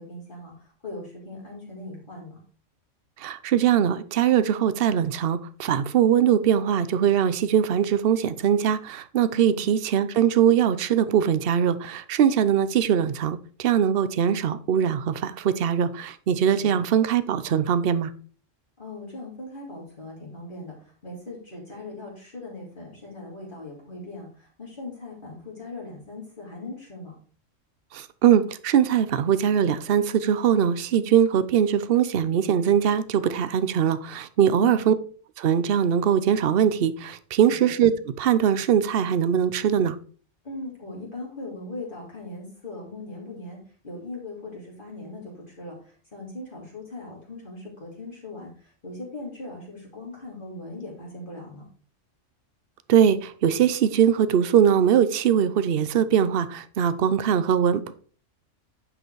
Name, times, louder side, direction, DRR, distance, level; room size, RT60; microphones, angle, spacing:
voice 1, 0.0-2.4 9.3-9.6 16.5-16.8 18.8-27.1 34.5-34.8 37.5-37.7 40.4-51.6, left 2 dB, 40° left, 2.8 m, -39 dB
voice 2, 3.2-18.1 27.9-34.9 35.4-40.0 52.9-57.9, right 9 dB, 55° right, 0.8 m, -21 dB
9.7 x 5.6 x 4.6 m
omnidirectional pair, 1.3 m